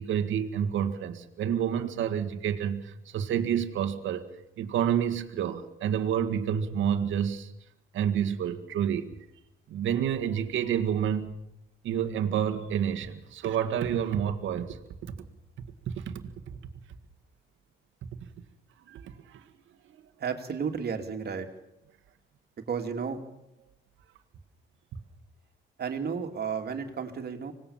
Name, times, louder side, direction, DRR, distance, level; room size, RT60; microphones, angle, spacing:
voice 1, 0.0-4.3 4.6-7.5 7.9-9.1 9.7-11.4 11.8-15.1 15.9-16.2 18.9-19.5, right 9 dB, 80° right, 6 dB, 1.9 m, -29 dB
voice 2, 20.2-21.5 22.7-23.2 25.8-27.5, right 6 dB, 55° right, 5 dB, 3.0 m, -32 dB
25.5 x 19.0 x 7.3 m, 0.85 s
cardioid pair, 90°, 20 cm